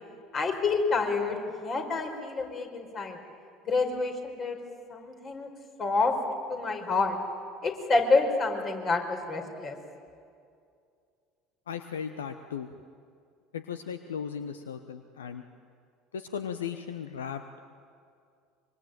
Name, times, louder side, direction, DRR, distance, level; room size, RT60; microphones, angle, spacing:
voice 1, 0.3-3.2 3.7-4.6 4.9-5.5 5.8-6.1 6.5-7.2 7.6-9.8, left 3 dB, 40° left, 3 dB, 5.0 m, -28 dB
voice 2, 11.7-12.7 13.5-15.4 16.1-17.4, left 7 dB, 75° left, 9 dB, 1.0 m, -36 dB
25.0 x 24.5 x 9.2 m, 2.3 s
figure-of-eight pair, 65°, 0 cm